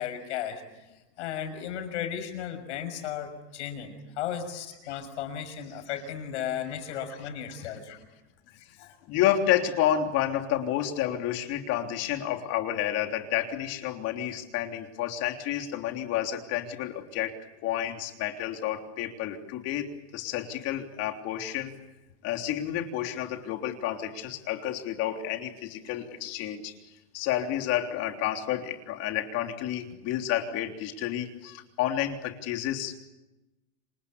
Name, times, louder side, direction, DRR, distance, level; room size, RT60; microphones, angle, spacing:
voice 1, 0.0-8.0 8.6-8.9, left 9 dB, 80° left, 8 dB, 6.3 m, -35 dB
voice 2, 9.1-17.3 17.6-19.9 20.1-21.7 22.2-26.7 27.1-33.1, left 11 dB, 45° left, 5 dB, 3.4 m, -30 dB
27.5 x 25.5 x 8.4 m, 1.0 s
supercardioid pair, 140°, 34 cm